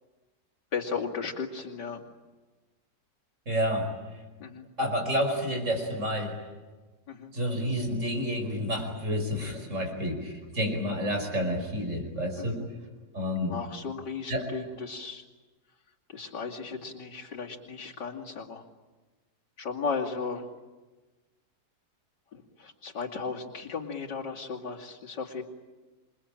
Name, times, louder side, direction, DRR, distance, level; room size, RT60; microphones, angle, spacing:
voice 1, 0.7-2.0 4.4-4.6 7.1-7.3 12.4-12.7 13.4-15.2 16.1-18.6 19.6-20.4 22.3-25.4, left 5 dB, 90° left, -2 dB, 3.2 m, -35 dB
voice 2, 3.5-3.9 4.8-6.4 7.3-12.6 13.1-13.5 14.3-14.5, equal, 45° right, 4 dB, 5.6 m, -29 dB
28.0 x 22.5 x 8.9 m, 1.2 s
omnidirectional pair, 1.8 m